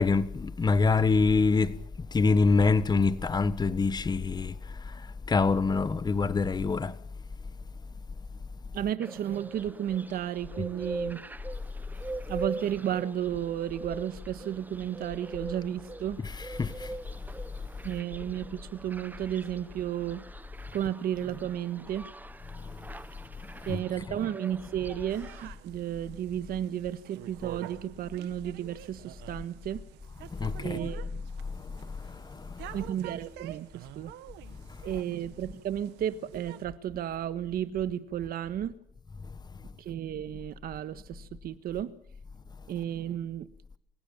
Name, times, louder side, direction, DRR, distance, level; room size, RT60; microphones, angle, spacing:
voice 1, 0.0-1.8 2.1-4.5 5.3-6.9 16.6-16.7 23.7-23.8 30.4-30.8, left 4 dB, 25° left, 1.3 m, -24 dB
voice 2, 8.7-11.2 12.3-16.2 17.8-20.2 20.7-22.1 23.7-29.8 30.6-31.2 32.7-34.1 34.8-38.7 39.8-41.9 42.7-43.5, right 10 dB, 60° right, 1.6 m, -33 dB
sound 1, 9.0-25.5, right 2 dB, 10° right, 0.9 m, -43 dB
sound 2, 25.1-36.6, right 14 dB, 85° right, 1.5 m, -48 dB
28.0 x 17.0 x 7.3 m
cardioid pair, 110°, 17 cm